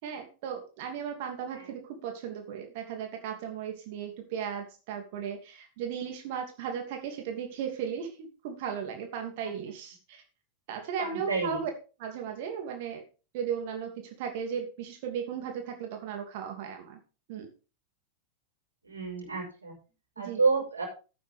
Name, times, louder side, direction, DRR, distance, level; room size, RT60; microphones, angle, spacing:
voice 1, 0.0-10.2 10.7-11.7 12.0-13.0 13.3-17.0 17.3-17.5 20.2-20.4, right 8 dB, 50° right, 3 dB, 2.8 m, -36 dB
voice 2, 11.0-11.6 18.9-19.7 20.2-20.9, right 4 dB, 80° right, -1 dB, 5.6 m, -29 dB
13.5 x 9.2 x 3.7 m, 0.34 s
figure-of-eight pair, 90°, 0 cm